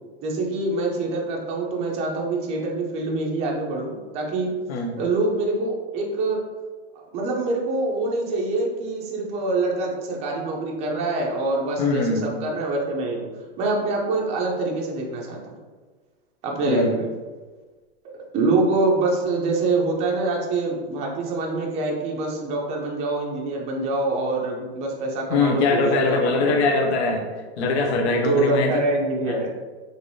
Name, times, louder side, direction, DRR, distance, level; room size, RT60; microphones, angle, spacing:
voice 1, 0.2-4.5 5.0-6.4 7.1-13.3 13.6-15.6 16.4-17.0 18.1-26.6 28.2-29.5, right 2 dB, 20° right, -1 dB, 0.4 m, -25 dB
voice 2, 4.7-5.0 11.8-12.3 16.7-17.0 25.3-27.3 27.6-28.8 29.3-29.5, left 3 dB, 85° left, 3 dB, 0.6 m, -22 dB
3.2 x 2.6 x 2.6 m, 1.3 s
supercardioid pair, 140°, 32 cm